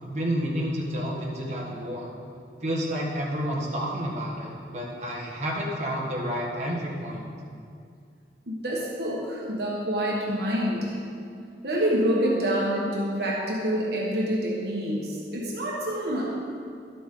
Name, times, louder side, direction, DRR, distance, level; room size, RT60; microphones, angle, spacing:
voice 1, 0.0-2.1 2.6-7.3, equal, 40° right, -4 dB, 1.6 m, -30 dB
voice 2, 8.5-11.0 11.6-16.3, equal, 65° right, -4 dB, 1.4 m, -27 dB
12.0 x 8.4 x 3.8 m, 2.3 s
head